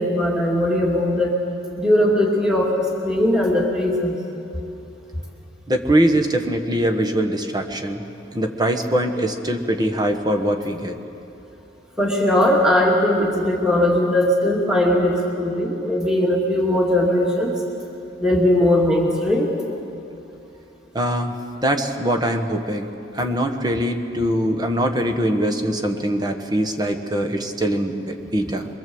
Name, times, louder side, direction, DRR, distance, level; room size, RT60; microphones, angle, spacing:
voice 1, 0.0-1.4 1.8-4.1 12.0-17.5 18.2-19.5, left 1 dB, 5° right, -2 dB, 2.6 m, -19 dB
voice 2, 5.7-8.0 8.3-11.0 20.9-21.3 21.6-22.9 23.1-28.7, right 1 dB, 20° right, 4 dB, 1.5 m, -22 dB
24.0 x 23.0 x 7.9 m, 2.8 s
head